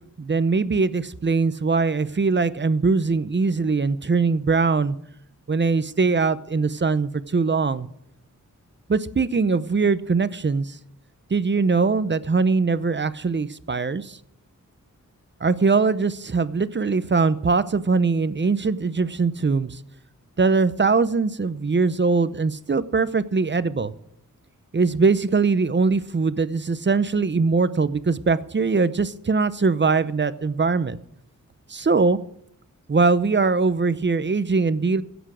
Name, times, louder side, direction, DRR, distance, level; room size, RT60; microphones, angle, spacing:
voice 1, 0.2-5.0 5.5-7.9 8.9-10.8 11.3-14.2 15.4-19.8 20.4-23.9 24.7-31.0 31.7-32.2 32.9-35.0, right 4 dB, 35° right, 15 dB, 0.7 m, -21 dB
16.5 x 8.2 x 6.2 m, 0.71 s
wide cardioid pair, 85°, 32 cm